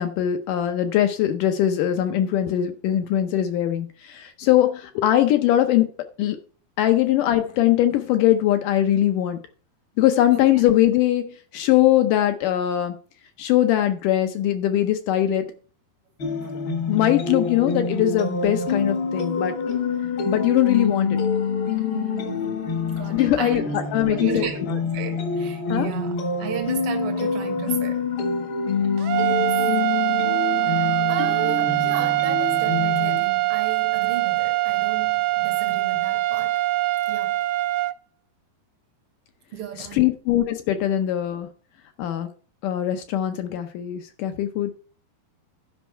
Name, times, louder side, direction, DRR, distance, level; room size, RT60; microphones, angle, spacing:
voice 1, 0.0-5.9 6.2-6.4 6.8-9.4 10.0-13.0 13.4-15.5 16.9-19.8 20.2-21.2 23.1-24.8 25.7-25.9 39.8-41.5 42.0-42.3 42.6-44.7, left 12 dB, 75° left, 1.9 m, -21 dB
voice 2, 10.3-10.6 16.4-16.5 21.9-23.7 24.0-28.0 29.2-29.6 30.6-36.7 37.1-37.4 39.5-40.1, right 9 dB, 60° right, 1.4 m, -34 dB
sound 1, 16.2-33.2, left 5 dB, 55° left, 1.4 m, -26 dB
sound 2, 29.0-37.9, right 19 dB, 80° right, 2.4 m, -23 dB
12.5 x 5.4 x 4.4 m
omnidirectional pair, 4.4 m